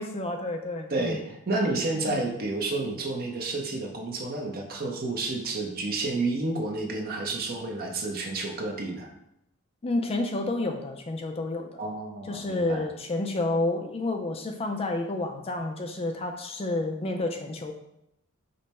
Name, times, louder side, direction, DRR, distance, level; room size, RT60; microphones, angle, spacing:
voice 1, 0.0-1.2 9.8-11.8 12.3-17.7, left 2 dB, 30° left, 4 dB, 0.4 m, -30 dB
voice 2, 0.9-9.1 11.8-12.8, right 2 dB, 45° right, 2 dB, 0.7 m, -30 dB
5.2 x 2.1 x 4.2 m, 0.81 s
head